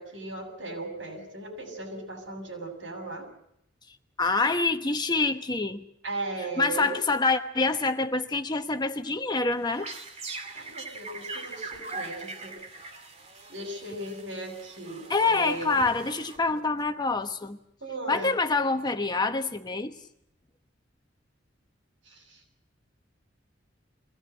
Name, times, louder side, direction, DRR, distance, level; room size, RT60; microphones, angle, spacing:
voice 1, 0.0-3.3 6.0-7.0 10.5-12.6 13.5-15.8 17.8-18.4 22.1-22.4, right 2 dB, 85° right, 4 dB, 6.9 m, -37 dB
voice 2, 4.2-5.8 6.6-9.9 15.1-17.6 18.1-20.0, left 3 dB, 25° left, 7 dB, 1.1 m, -26 dB
sound 1, 9.5-16.8, right 3 dB, 35° right, 2.3 m, -42 dB
23.0 x 17.5 x 8.0 m, 0.75 s
head